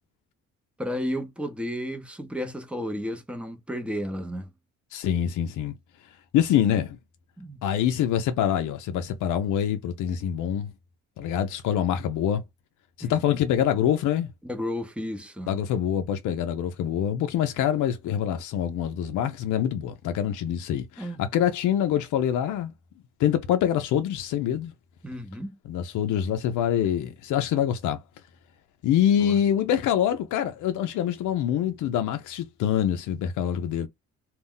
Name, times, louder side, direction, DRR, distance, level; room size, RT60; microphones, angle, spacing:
voice 1, 0.8-4.5 7.4-7.6 13.0-13.4 14.4-15.5 21.0-21.2 25.0-25.6 29.2-29.4, equal, 5° right, 0.7 m, -33 dB
voice 2, 4.9-5.7 6.3-7.0 7.6-10.7 11.2-12.4 13.0-14.3 15.5-22.7 23.2-24.7 25.7-28.0 28.8-33.9, left 10 dB, 80° left, 0.5 m, -25 dB
2.3 x 2.1 x 3.6 m
cardioid pair, 90°, 30 cm